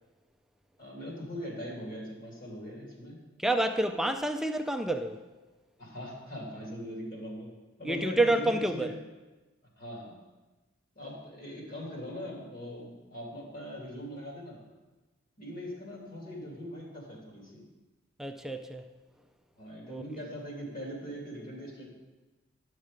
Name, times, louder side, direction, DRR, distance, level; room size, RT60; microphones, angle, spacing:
voice 1, 0.8-3.2 5.8-7.5 7.8-8.9 9.8-10.1 10.9-14.6 15.4-17.6 19.6-21.9, equal, 45° left, -2 dB, 2.6 m, -41 dB
voice 2, 3.4-5.2 7.8-8.9 18.2-18.8 19.9-20.0, right 1 dB, ahead, 7 dB, 0.3 m, -28 dB
10.5 x 6.4 x 4.9 m, 1.2 s
head